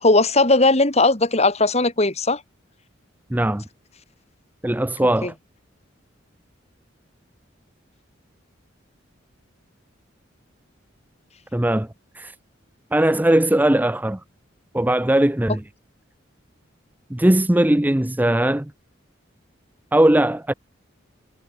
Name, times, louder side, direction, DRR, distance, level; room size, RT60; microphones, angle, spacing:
voice 1, 0.0-2.4 5.2-5.3, left 2 dB, 35° left, 3.0 m, -18 dB
voice 2, 3.3-3.6 4.6-5.3 11.5-11.9 12.2-12.3 12.9-14.2 14.7-15.6 17.1-18.7 19.9-20.5, right 1 dB, 10° right, 0.6 m, -19 dB
head